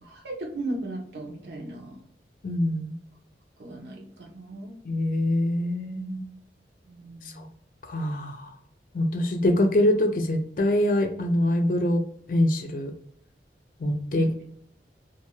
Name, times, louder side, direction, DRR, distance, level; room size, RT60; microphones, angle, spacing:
voice 1, 0.0-2.0 3.6-4.8 6.8-7.5 14.2-14.3, right 2 dB, 75° right, 0 dB, 0.8 m, -37 dB
voice 2, 2.4-3.0 4.8-6.2 7.4-7.5 7.9-8.5 8.9-12.0 12.3-12.9 13.8-14.4, left 1 dB, 50° left, 5 dB, 0.4 m, -24 dB
2.4 x 2.2 x 3.0 m, 0.64 s
head